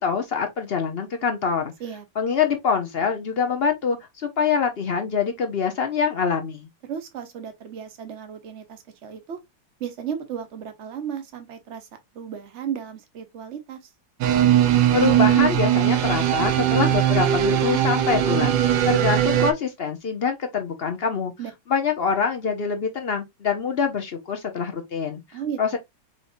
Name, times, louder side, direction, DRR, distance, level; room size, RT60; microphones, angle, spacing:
voice 1, 0.0-1.6 2.2-6.7 14.9-21.3 21.7-25.2 25.6-25.8, left 6 dB, 55° left, 0.7 m, -25 dB
voice 2, 6.8-9.4 9.8-11.9 12.1-13.9 21.4-21.5 25.3-25.8, right 8 dB, 45° right, 1.1 m, -34 dB
sound 1, 14.2-19.5, right 11 dB, 75° right, 1.4 m, -20 dB
5.6 x 3.1 x 2.5 m
omnidirectional pair, 2.1 m